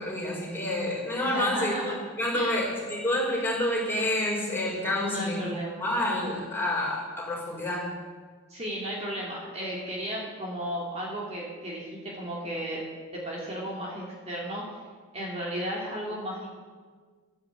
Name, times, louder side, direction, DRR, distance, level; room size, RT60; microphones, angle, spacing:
voice 1, 0.0-1.7 2.2-5.4 5.8-7.8, left 1 dB, 10° left, -5 dB, 5.1 m, -28 dB
voice 2, 1.2-1.9 2.3-2.6 5.0-5.8 8.5-12.8 13.1-14.6 15.1-16.5, equal, 30° right, -4 dB, 2.9 m, -34 dB
12.5 x 10.5 x 8.3 m, 1.5 s
head